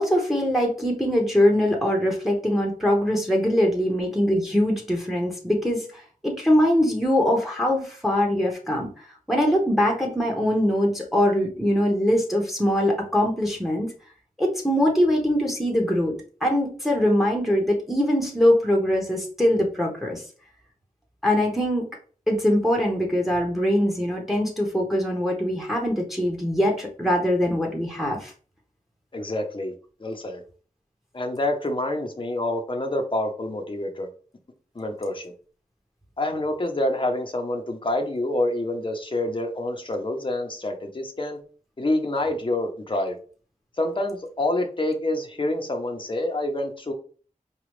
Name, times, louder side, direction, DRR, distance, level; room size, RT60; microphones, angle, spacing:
voice 1, 0.0-13.9 14.4-16.1 16.4-20.2 21.2-21.9 22.3-28.3, equal, ahead, 1 dB, 1.2 m, -22 dB
voice 2, 29.1-29.7 30.0-30.4 31.1-34.1 34.7-35.3 36.2-41.4 41.8-43.2 43.8-46.9, left 1 dB, 35° left, 3 dB, 0.8 m, -27 dB
4.9 x 2.3 x 3.2 m, 0.40 s
wide cardioid pair, 55°, 15 cm